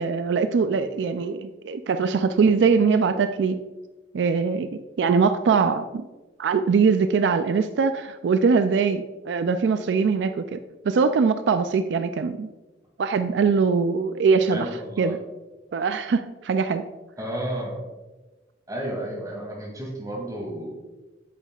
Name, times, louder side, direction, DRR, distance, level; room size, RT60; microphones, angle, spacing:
voice 1, 0.0-3.6 4.1-6.0 6.4-10.6 10.8-12.5 13.0-14.7 15.0-15.2 15.7-16.8, right 5 dB, 85° right, 10 dB, 0.3 m, -22 dB
voice 2, 14.5-15.1 17.2-17.8 18.7-20.7, right 1 dB, 20° right, -3 dB, 2.4 m, -32 dB
9.1 x 7.3 x 2.4 m, 1.2 s
head